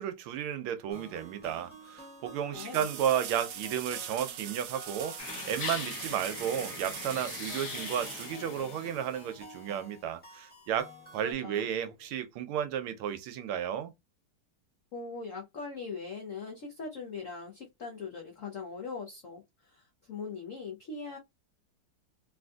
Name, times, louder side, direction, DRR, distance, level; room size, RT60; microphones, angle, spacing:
voice 1, 0.0-13.9, right 9 dB, 85° right, 1.5 m, -33 dB
sound 1, 0.9-11.3, equal, 5° left, 0.9 m, -51 dB
voice 2, 2.5-2.8 11.2-11.7 14.9-21.2, left 4 dB, 75° left, 0.7 m, -41 dB
sound 2, 2.5-9.1 12.0-12.1, right 9 dB, 70° right, 1.1 m, -42 dB
sound 3, 5.2-9.5, left 5 dB, 60° left, 1.1 m, -41 dB
3.7 x 2.5 x 2.3 m
omnidirectional pair, 2.3 m